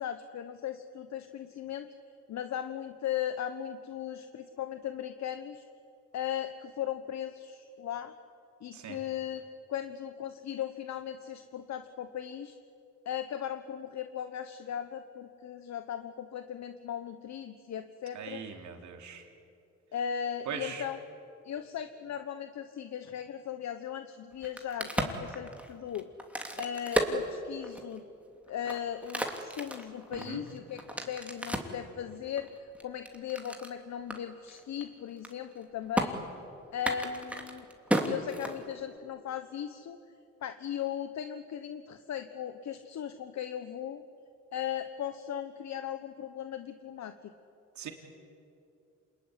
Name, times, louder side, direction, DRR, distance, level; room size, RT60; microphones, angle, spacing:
voice 1, 0.0-1.9 2.3-5.6 6.1-8.1 8.6-9.4 9.7-12.5 13.0-18.4 19.9-21.0 21.4-26.1 26.6-28.0 28.5-36.2 36.7-37.7 38.0-40.0 40.4-44.0 44.5-47.3, left 9 dB, 65° left, 9 dB, 1.2 m, -37 dB
voice 2, 18.2-19.2 20.5-20.8 30.1-30.5 47.8-47.9, right 7 dB, 70° right, 3 dB, 3.6 m, -40 dB
Crack, 24.3-28.0 28.5-31.8 32.4-33.7 34.1-34.2 34.5-34.8 35.1-35.6 35.9-36.1 36.7-39.0, right 1 dB, 5° right, 3.0 m, -33 dB
28.0 x 20.5 x 9.9 m, 2.6 s
cardioid pair, 90°, 30 cm